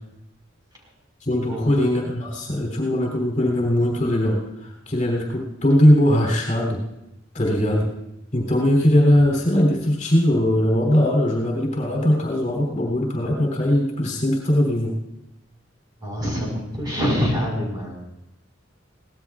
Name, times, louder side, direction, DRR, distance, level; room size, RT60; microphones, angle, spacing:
voice 1, 1.2-6.8 7.3-7.9 8.3-14.9, left 1 dB, 40° left, -1 dB, 3.5 m, -20 dB
voice 2, 16.0-18.0, equal, 20° right, -2 dB, 5.4 m, -25 dB
23.5 x 18.0 x 2.5 m, 0.87 s
head